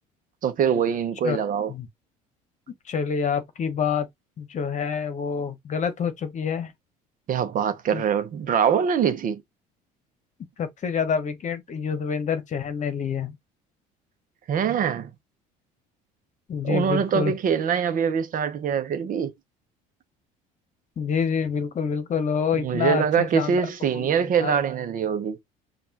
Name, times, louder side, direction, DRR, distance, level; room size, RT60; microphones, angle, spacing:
voice 1, 0.4-1.7 7.3-9.4 14.5-15.1 16.6-19.3 22.6-25.4, right 7 dB, 50° right, 0.9 m, -23 dB
voice 2, 2.9-4.1 4.4-6.7 7.9-8.0 10.6-13.4 16.5-17.3 21.0-23.6 23.9-24.1 24.4-24.5, left 6 dB, 40° left, 1.0 m, -27 dB
5.2 x 2.5 x 2.9 m
supercardioid pair, 80°, 18 cm